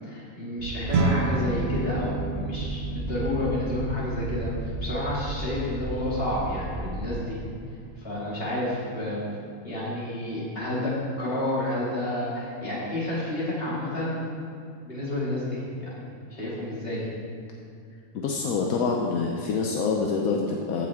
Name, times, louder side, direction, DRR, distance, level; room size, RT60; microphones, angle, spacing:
voice 1, 0.0-7.4 8.0-9.2 9.6-14.2 14.8-17.1, left 1 dB, 40° left, -7 dB, 2.7 m, -30 dB
sound 1, 0.6-7.1, right 2 dB, 45° right, 0.5 m, -34 dB
sound 2, 0.9-10.4, right 3 dB, 70° right, 1.2 m, -33 dB
voice 2, 18.1-20.9, left 4 dB, 80° left, 0 dB, 1.2 m, -26 dB
15.0 x 5.9 x 3.6 m, 2.4 s
omnidirectional pair, 1.5 m